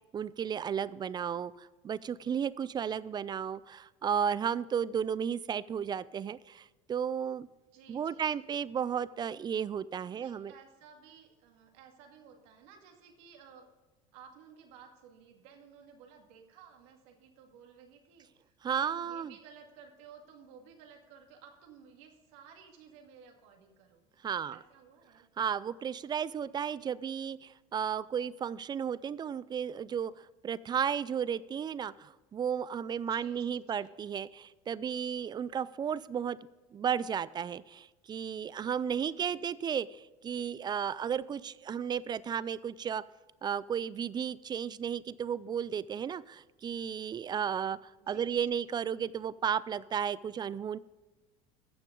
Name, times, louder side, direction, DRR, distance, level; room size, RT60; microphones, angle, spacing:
voice 1, 0.1-7.5 7.9-10.5 18.6-19.3 24.2-24.6 25.4-36.4 36.7-43.0 43.4-50.8, right 8 dB, 25° right, 19 dB, 0.4 m, -34 dB
voice 2, 7.7-8.6 10.1-13.7 14.1-18.5 18.8-25.2 33.1-34.0 39.0-39.5 48.0-48.7, right 7 dB, 75° right, 3 dB, 2.1 m, -56 dB
15.5 x 6.1 x 3.8 m, 1.2 s
supercardioid pair, 100°, 17 cm